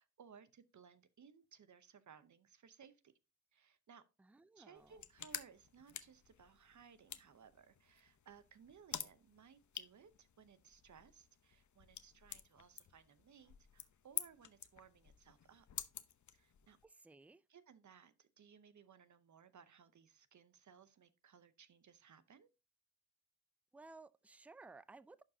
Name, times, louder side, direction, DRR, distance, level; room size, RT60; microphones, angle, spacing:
voice 1, 0.0-3.1 3.5-4.0 4.6-15.7 16.3-16.8 17.5-22.5, right 7 dB, 50° right, 0.8 m, -62 dB
voice 2, 4.2-4.9 16.8-17.4 23.7-25.2, right 3 dB, 5° right, 0.3 m, -58 dB
sound 1, 4.8-16.8, left 9 dB, 50° left, 0.8 m, -50 dB
11.0 x 4.8 x 2.7 m
cardioid pair, 70°, 38 cm